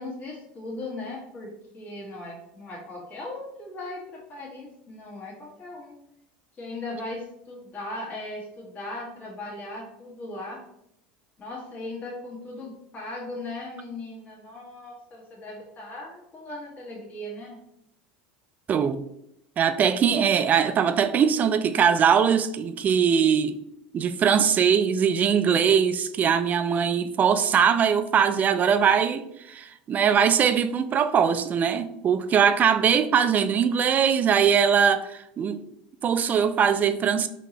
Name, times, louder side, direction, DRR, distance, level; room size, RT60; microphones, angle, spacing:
voice 1, 0.0-6.0 6.6-10.6 11.4-17.6, left 2 dB, 35° left, 1.3 m, -38 dB
voice 2, 18.7-19.0 19.6-23.6 23.9-29.2 29.5-35.6 36.0-37.3, right 7 dB, 35° right, 0.3 m, -21 dB
3.6 x 2.9 x 2.8 m
hypercardioid pair, 90°, 5 cm